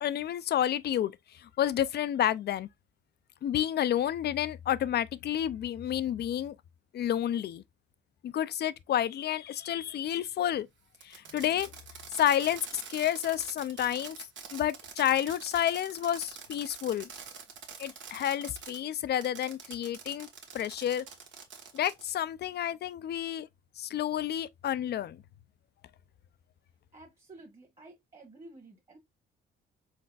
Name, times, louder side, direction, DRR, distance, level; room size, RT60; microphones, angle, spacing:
voice 1, 0.0-2.7 3.4-6.6 6.9-7.6 8.2-10.7 11.0-11.7 12.1-14.2 14.5-17.1 17.8-20.3 20.5-21.0 21.7-23.5 23.8-25.2, left 11 dB, 55° left, 0.5 m, -30 dB
Fireworks, 10.9-18.8 19.2-22.1, right 6 dB, 70° right, 1.3 m, -46 dB
voice 2, 26.9-29.0, right 2 dB, 30° right, 1.5 m, -52 dB
4.4 x 4.0 x 2.4 m
cardioid pair, 90°, 20 cm